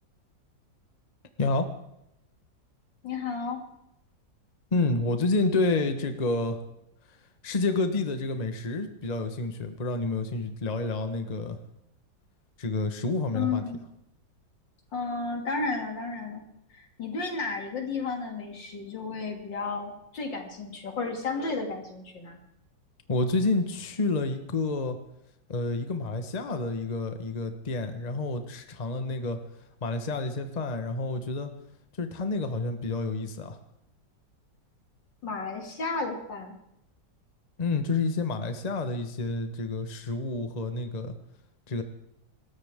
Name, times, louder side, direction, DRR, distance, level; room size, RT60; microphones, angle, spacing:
voice 1, 1.4-1.7 4.7-6.6 7.4-11.6 12.6-13.6 23.1-25.0 25.5-29.4 29.8-31.5 32.0-33.6 37.6-41.1 41.7-41.8, left 3 dB, 25° left, 7 dB, 1.2 m, -29 dB
voice 2, 3.0-3.6 13.3-13.8 14.9-16.4 16.7-22.4 35.2-36.5, left 4 dB, 80° left, 3 dB, 3.4 m, -33 dB
26.0 x 13.5 x 3.7 m, 0.83 s
omnidirectional pair, 1.9 m